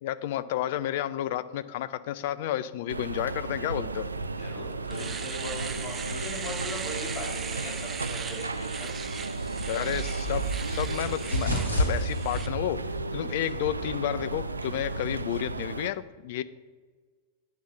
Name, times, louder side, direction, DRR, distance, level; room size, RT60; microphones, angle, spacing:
voice 1, 0.0-4.1 9.7-12.8 13.1-16.4, left 12 dB, 50° left, 14 dB, 0.4 m, -31 dB
sound 1, 2.9-15.9, right 3 dB, 80° right, 0.4 m, -34 dB
Domestic sounds home sounds, 4.2-4.3 4.7-12.5, right 6 dB, 25° right, 0.6 m, -39 dB
voice 2, 4.3-9.0, left 1 dB, 30° left, -3 dB, 3.2 m, -40 dB
sound 2, 9.4-15.5, left 1 dB, 85° left, 1.6 m, -33 dB
9.3 x 5.3 x 6.0 m, 1.4 s
figure-of-eight pair, 90°, 0 cm